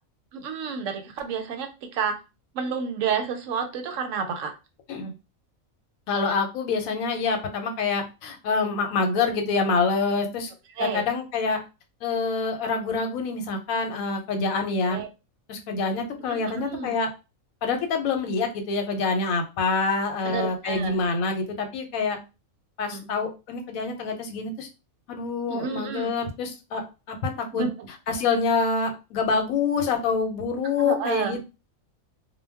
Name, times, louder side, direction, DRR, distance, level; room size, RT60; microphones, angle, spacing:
voice 1, 0.3-1.7 1.9-2.1 2.5-4.5 10.8-11.1 14.8-15.1 16.3-17.0 20.2-20.9 22.9-23.1 25.5-26.1 27.5-27.9 30.8-31.4, right 6 dB, 70° right, 6 dB, 0.9 m, -30 dB
voice 2, 6.1-10.5 10.8-11.6 12.0-15.0 15.5-17.1 17.6-22.2 22.8-24.7 25.1-27.6 28.1-31.4, left 4 dB, 85° left, 5 dB, 1.1 m, -26 dB
2.2 x 2.2 x 3.3 m, 0.29 s
omnidirectional pair, 1.4 m